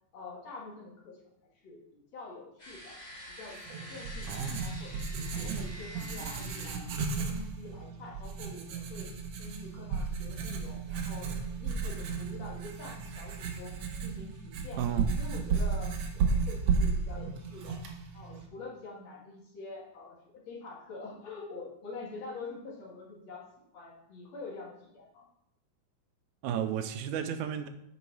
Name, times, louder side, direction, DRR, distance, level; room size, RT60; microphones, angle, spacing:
voice 1, 0.1-1.2 1.5-3.0 3.3-6.8 7.2-9.1 9.4-11.3 11.6-13.8 14.0-14.8 15.2-17.8 18.1-20.2 20.5-23.4 23.7-25.2, left 3 dB, 60° left, -3 dB, 3.0 m, -46 dB
sound 1, 2.6-7.8, equal, 15° left, 3.1 m, -48 dB
Writing, 3.7-18.5, right 5 dB, 65° right, 1.8 m, -34 dB
voice 2, 4.3-4.6 5.3-5.7 14.8-15.1 26.4-27.7, right 9 dB, 80° right, 8 dB, 1.9 m, -33 dB
8.3 x 5.5 x 4.7 m, 0.80 s
omnidirectional pair, 3.5 m